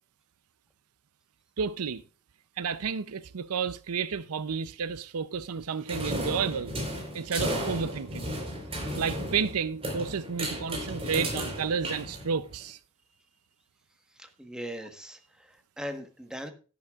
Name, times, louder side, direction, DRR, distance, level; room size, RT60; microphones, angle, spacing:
voice 1, 1.6-2.0 2.6-6.7 7.1-8.3 9.0-12.8, right 6 dB, 75° right, 0.6 m, -31 dB
sound 1, 5.9-12.6, equal, 25° right, 4.2 m, -34 dB
voice 2, 14.1-16.5, equal, 5° right, 1.3 m, -40 dB
12.5 x 11.0 x 2.4 m
head